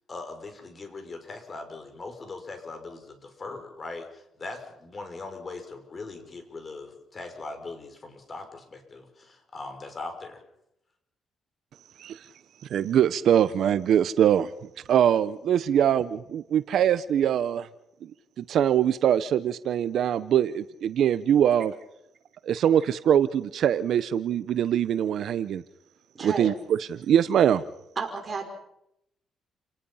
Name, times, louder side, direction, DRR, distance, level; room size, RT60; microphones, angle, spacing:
voice 1, 0.1-10.4, left 3 dB, 35° left, 5 dB, 6.0 m, -40 dB
voice 2, 12.7-14.5 14.9-17.7 18.0-18.1 18.4-21.7 22.4-25.6 26.2-26.5 26.9-27.6, right 9 dB, 70° right, 14 dB, 0.8 m, -23 dB
voice 3, 26.1-26.5 28.0-28.4, right 4 dB, 35° right, 3 dB, 5.6 m, -32 dB
30.0 x 19.0 x 5.7 m, 0.83 s
cardioid pair, 90°, 0 cm